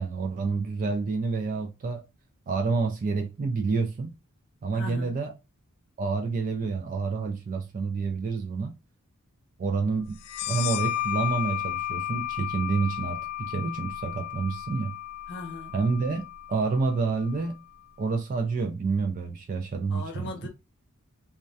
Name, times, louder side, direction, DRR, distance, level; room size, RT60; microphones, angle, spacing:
voice 1, 0.0-2.0 2.5-4.1 4.6-5.3 6.0-8.7 9.6-10.2 10.5-15.0 15.7-16.2 16.5-17.6 18.0-20.5, right 4 dB, 40° right, 0.3 m, -28 dB
voice 2, 4.7-5.2 15.3-15.8 19.9-20.5, left 2 dB, 50° left, 0.7 m, -38 dB
sound 1, 10.2-17.5, left 14 dB, 80° left, 0.3 m, -33 dB
2.3 x 2.1 x 2.6 m
head